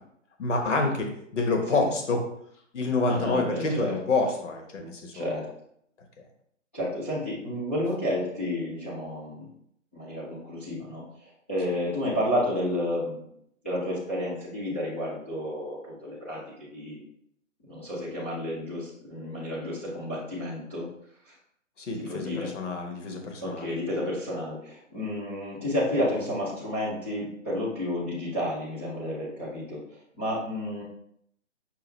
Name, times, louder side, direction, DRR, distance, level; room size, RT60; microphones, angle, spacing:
voice 1, 0.4-2.3 2.7-5.4 21.8-23.7, left 3 dB, 65° left, 3 dB, 1.1 m, -28 dB
voice 2, 3.1-3.9 5.1-5.5 6.7-9.5 9.9-13.3 13.6-17.0 17.6-20.9 21.2-21.4 22.0-22.5 23.4-29.8 30.2-30.8, left 1 dB, 10° left, -10 dB, 0.4 m, -31 dB
5.6 x 2.4 x 3.2 m, 0.70 s
figure-of-eight pair, 140°, 39 cm